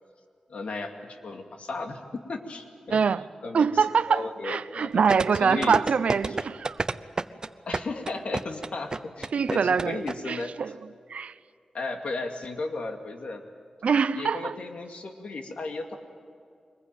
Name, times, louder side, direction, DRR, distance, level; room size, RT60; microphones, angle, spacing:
voice 1, 0.5-3.1 3.4-5.8 6.3-6.4 7.7-10.5 11.7-13.4 14.1-15.9, left 3 dB, 75° left, 2.3 m, -35 dB
voice 2, 2.9-3.3 3.5-6.8 9.3-10.7 11.1-11.3 13.8-14.6, right 6 dB, 85° right, 0.6 m, -24 dB
sound 1, 5.1-10.1 10.4-10.5, right 3 dB, 35° right, 0.7 m, -29 dB
23.5 x 21.0 x 9.1 m
wide cardioid pair, 95°, 2 cm